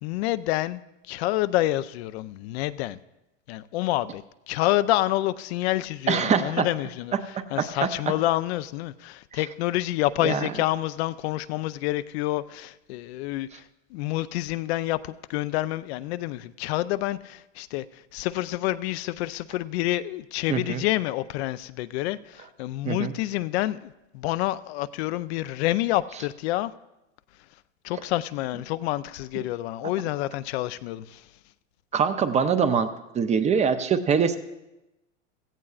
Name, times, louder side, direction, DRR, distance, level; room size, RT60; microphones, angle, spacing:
voice 1, 0.0-0.8 1.1-3.0 3.5-7.1 7.5-13.6 13.9-26.7 27.8-31.3, left 16 dB, 55° left, 0.5 m, -28 dB
voice 2, 6.1-6.7 7.3-7.9 9.3-9.4 10.2-10.4 20.5-20.8 22.9-23.1 29.4-29.5 31.9-32.9 33.1-34.4, right 6 dB, 20° right, 0.5 m, -23 dB
16.5 x 14.5 x 2.4 m
hypercardioid pair, 115°, 38 cm